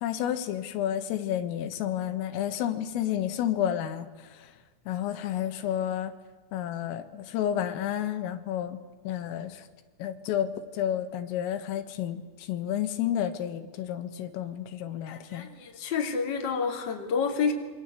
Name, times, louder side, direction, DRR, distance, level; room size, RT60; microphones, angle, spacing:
voice 1, 0.0-4.1 4.9-6.1 6.5-8.8 9.1-9.6 10.0-10.5 10.7-15.5, left 10 dB, 85° left, 9 dB, 4.1 m, -30 dB
voice 2, 15.1-17.5, left 5 dB, 30° left, 3 dB, 2.7 m, -29 dB
27.0 x 25.0 x 8.3 m, 1.4 s
omnidirectional pair, 5.9 m